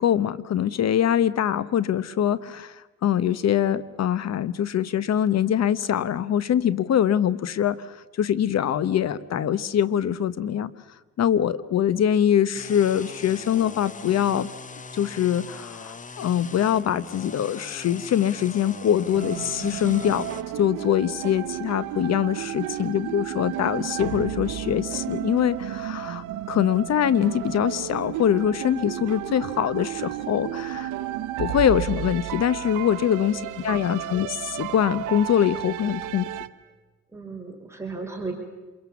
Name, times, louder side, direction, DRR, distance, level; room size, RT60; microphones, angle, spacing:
voice 1, 0.0-10.7 11.2-14.5 14.9-20.3 20.6-30.9 31.4-36.3, left 9 dB, 60° left, 17 dB, 1.0 m, -23 dB
sound 1, 12.5-20.4, left 4 dB, 25° left, 0.9 m, -41 dB
sound 2, 19.1-36.5, right 13 dB, 90° right, 0.9 m, -33 dB
voice 2, 33.0-33.8 37.1-38.3, right 3 dB, 10° right, 1 dB, 4.2 m, -36 dB
27.0 x 22.5 x 7.1 m, 1.2 s
cardioid pair, 90°, 30 cm